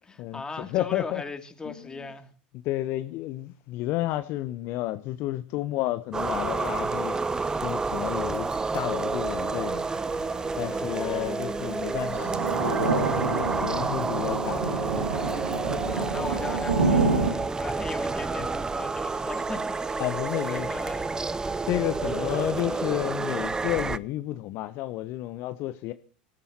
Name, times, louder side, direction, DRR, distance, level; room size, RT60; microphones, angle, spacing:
voice 1, 0.0-2.3 10.7-11.4 15.4-15.5 15.8-20.0 20.4-21.1 21.9-22.4, left 3 dB, 15° left, 2.6 m, -39 dB
voice 2, 0.7-1.2 1.6-2.1 2.6-7.2 7.6-9.9 10.6-14.8 18.3-18.5 20.0-20.7 21.6-25.9, left 15 dB, 50° left, 0.8 m, -31 dB
sound 1, 6.1-24.0, right 4 dB, 15° right, 0.7 m, -30 dB
Thunder / Rain, 6.2-17.3, right 4 dB, 80° right, 2.3 m, -30 dB
sound 2, 12.1-14.8, right 10 dB, 55° right, 1.8 m, -39 dB
23.0 x 14.0 x 2.9 m
hypercardioid pair, 85°, 5 cm